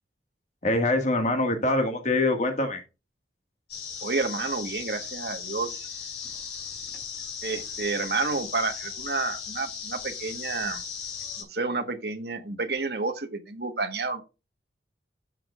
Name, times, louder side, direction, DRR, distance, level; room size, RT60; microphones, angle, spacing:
voice 1, 0.6-2.8, left 2 dB, 40° left, 1.9 m, -24 dB
sound 1, 3.7-11.4, left 6 dB, 60° left, 5.2 m, -37 dB
voice 2, 4.0-5.9 7.4-10.8 11.4-14.2, right 3 dB, 60° right, 1.4 m, -30 dB
12.5 x 7.4 x 2.5 m
head